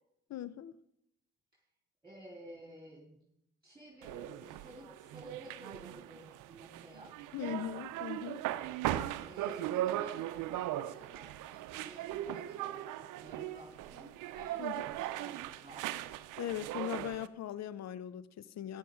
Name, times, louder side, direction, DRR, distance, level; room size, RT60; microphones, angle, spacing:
voice 1, 0.3-0.7 7.3-8.4 14.6-14.8 16.4-18.8, left 11 dB, 55° left, 17 dB, 0.7 m, -39 dB
voice 2, 2.0-3.2 3.6-7.2 9.2-15.9, right 1 dB, 15° right, -3 dB, 3.9 m, -53 dB
sound 1, 4.0-17.3, right 13 dB, 70° right, 0.6 m, -39 dB
14.0 x 10.0 x 3.7 m, 0.76 s
hypercardioid pair, 45°, 32 cm